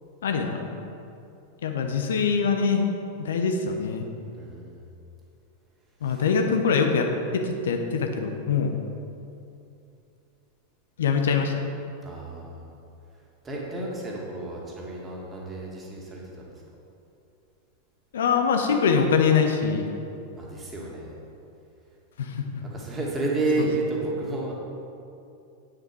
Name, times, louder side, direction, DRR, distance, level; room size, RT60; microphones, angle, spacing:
voice 1, 0.2-0.8 1.6-2.8 3.2-4.0 6.0-8.7 11.0-11.5 18.1-19.9 22.2-22.5, left 5 dB, 60° left, 5 dB, 0.8 m, -23 dB
voice 2, 4.3-4.8 6.0-6.3 12.0-12.7 13.4-16.5 20.4-21.2 22.6-24.5, right 2 dB, 20° right, -3 dB, 2.3 m, -31 dB
9.0 x 8.7 x 4.8 m, 2.6 s
figure-of-eight pair, 90°, 0 cm